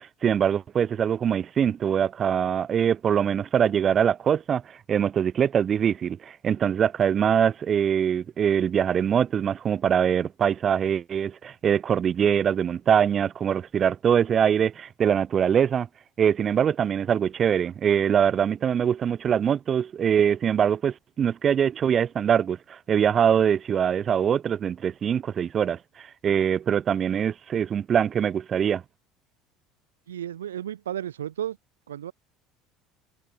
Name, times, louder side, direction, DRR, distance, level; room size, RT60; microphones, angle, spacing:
voice 1, 0.0-15.9 16.2-28.8, right 8 dB, 35° right, 0.8 m, -23 dB
voice 2, 30.1-31.6 31.9-32.1, right 10 dB, 75° right, 0.4 m, -33 dB
figure-of-eight pair, 65°, 0 cm